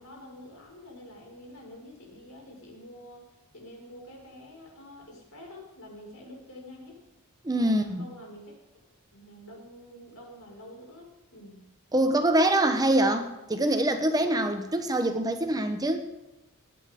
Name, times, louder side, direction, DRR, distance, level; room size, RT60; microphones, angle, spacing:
voice 1, 0.0-3.3 3.5-7.0 7.6-8.6 9.1-11.7 14.2-14.3, left 1 dB, 80° left, -1 dB, 5.5 m, -47 dB
voice 2, 7.4-8.1 11.9-16.1, right 1 dB, 20° right, 7 dB, 1.0 m, -24 dB
19.5 x 9.0 x 3.7 m, 1.0 s
head